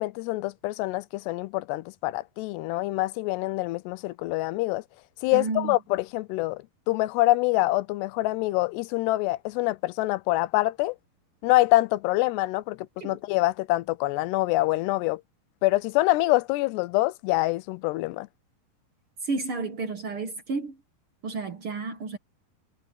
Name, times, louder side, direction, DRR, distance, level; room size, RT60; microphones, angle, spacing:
voice 1, 0.0-4.8 5.2-11.0 11.4-12.8 13.0-15.2 15.6-18.3, left 19 dB, 90° left, 2.8 m, -25 dB
voice 2, 5.3-5.8 13.0-13.2 19.2-20.8 21.2-22.2, right 4 dB, 55° right, 1.5 m, -31 dB
omnidirectional pair, 4.7 m